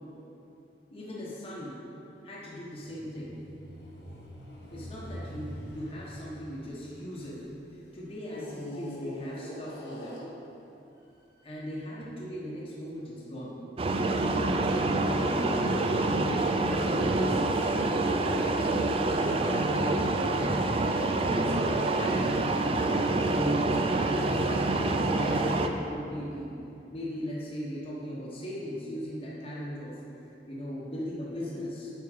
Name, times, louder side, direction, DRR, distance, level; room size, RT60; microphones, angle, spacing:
voice 1, 0.9-1.8 2.2-3.3 4.7-7.4 7.7-10.2 11.4-13.7 15.1-20.0 20.4-20.6 21.2-22.8 23.3-26.5 26.9-30.0 30.5-31.9, equal, 30° left, -7 dB, 1.1 m, -38 dB
sound 1, 2.8-7.5 8.3-10.8 11.5-11.6, equal, 75° left, 1.2 m, -43 dB
sound 2, 13.8-25.7, right 2 dB, 30° right, 0.4 m, -26 dB
7.3 x 5.6 x 5.1 m, 2.8 s
head